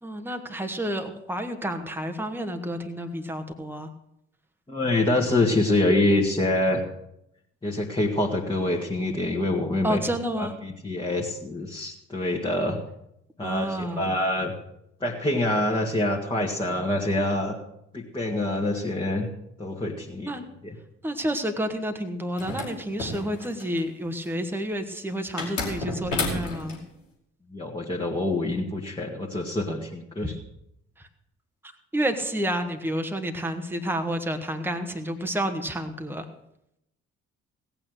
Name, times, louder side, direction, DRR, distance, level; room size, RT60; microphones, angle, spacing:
voice 1, 0.0-3.9 9.8-10.5 13.4-14.1 20.2-20.4 21.0-26.8 30.2-30.3 31.9-36.3, right 1 dB, 5° right, 5 dB, 1.6 m, -30 dB
voice 2, 4.7-6.8 7.6-10.0 10.4-12.8 13.4-14.5 15.0-17.6 17.9-19.3 19.6-20.3 20.6-20.8 27.5-30.4, left 1 dB, 15° left, -2 dB, 2.1 m, -26 dB
sound 1, 22.4-23.8 25.4-26.8, left 2 dB, 80° left, 2.3 m, -31 dB
17.5 x 8.9 x 6.5 m, 0.80 s
figure-of-eight pair, 45°, 37 cm